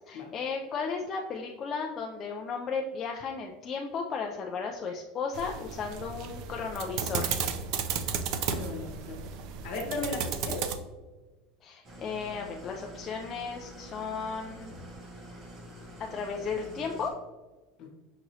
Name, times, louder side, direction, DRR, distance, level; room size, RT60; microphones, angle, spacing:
voice 1, 0.1-7.3 11.6-14.8 16.0-17.1, left 5 dB, 25° left, 1 dB, 0.3 m, -35 dB
sound 1, 5.3-10.7, right 6 dB, 45° right, 0.4 m, -33 dB
voice 2, 8.5-9.2 9.6-10.7 17.8-17.9, left 3 dB, 50° left, 1 dB, 1.1 m, -36 dB
Engine starting / Idling, 11.8-17.1, right 1 dB, 25° right, 0.9 m, -47 dB
5.9 x 2.9 x 2.7 m, 1.2 s
supercardioid pair, 165°, 0 cm